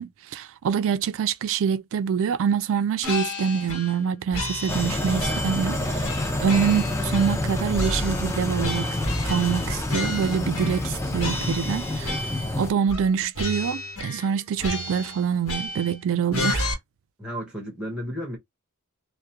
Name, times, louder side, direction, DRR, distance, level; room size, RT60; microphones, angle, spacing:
voice 1, 0.0-9.0 9.2-12.2 12.6-16.7, right 7 dB, 65° right, 0.3 m, -25 dB
sound 1, 3.0-4.0 4.3-5.7 6.0-7.5 7.7-10.9 11.2-12.5 12.9-13.1 13.3-14.3 14.6-16.0 16.3-16.7, left 2 dB, 75° left, 1.1 m, -32 dB
sound 2, 4.7-12.7, left 1 dB, 15° left, 0.4 m, -28 dB
voice 2, 17.2-18.4, equal, 5° right, 0.8 m, -33 dB
2.3 x 2.1 x 2.7 m
head